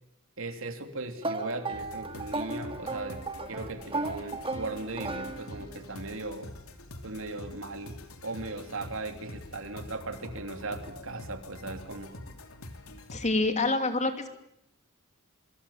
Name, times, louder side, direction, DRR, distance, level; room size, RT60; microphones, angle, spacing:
voice 1, 0.4-3.2 3.5-6.5 7.0-12.1, right 2 dB, 65° right, 7 dB, 3.2 m, -38 dB
sound 1, 1.2-5.8, right 3 dB, 25° right, 2.2 m, -35 dB
sound 2, 1.7-13.3, left 1 dB, 80° left, 3.1 m, -46 dB
voice 2, 13.1-14.3, left 2 dB, 35° left, 7 dB, 2.9 m, -27 dB
26.5 x 24.5 x 7.4 m, 0.75 s
head